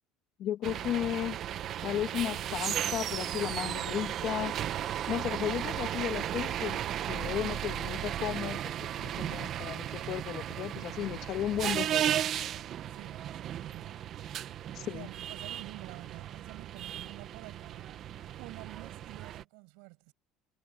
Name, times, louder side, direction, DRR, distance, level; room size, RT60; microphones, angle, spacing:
voice 1, 0.4-1.4 1.8-4.6 5.1-6.8 7.1-12.2 14.7-15.1, left 11 dB, 50° left, 1.7 m, -34 dB
sound 1, 0.6-19.4, right 11 dB, 45° right, 1.2 m, -35 dB
voice 2, 10.7-11.3 12.9-14.0 14.9-18.0 18.4-20.1, right 33 dB, 80° right, 7.2 m, -49 dB
cardioid pair, 145°, 0 cm